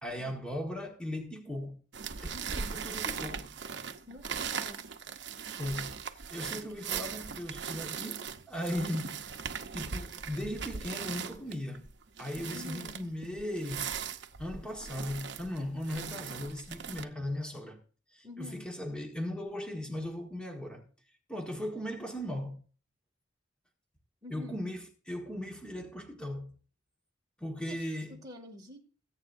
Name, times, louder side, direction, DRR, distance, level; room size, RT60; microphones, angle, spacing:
voice 1, 0.0-1.8 2.2-3.5 5.6-6.0 6.3-9.2 9.7-11.9 12.2-13.9 14.4-17.8 18.1-20.8 21.3-22.6 24.3-26.5 27.4-28.2, left 1 dB, 5° left, 1.4 m, -38 dB
sound 1, 1.9-17.0, right 6 dB, 55° right, 0.9 m, -39 dB
voice 2, 4.1-4.8 12.5-12.9 18.2-18.6 24.2-24.6 27.7-27.8 28.1-28.8, left 1 dB, 20° right, 2.3 m, -47 dB
21.5 x 8.9 x 2.6 m
head